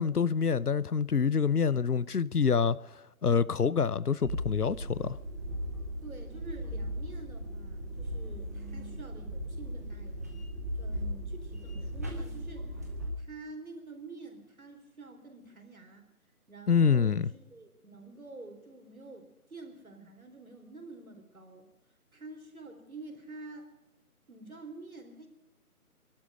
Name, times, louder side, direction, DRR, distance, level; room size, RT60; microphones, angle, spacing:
voice 1, 0.0-2.8 3.2-5.1 16.7-17.3, left 6 dB, 75° left, 0.8 m, -26 dB
sound 1, 4.2-13.1, equal, 10° right, 1.1 m, -37 dB
voice 2, 6.0-10.4 10.8-16.0 16.5-21.7 22.1-23.7 24.3-25.3, right 3 dB, 65° right, 4.1 m, -48 dB
23.5 x 12.0 x 5.0 m
figure-of-eight pair, 155°, 45 cm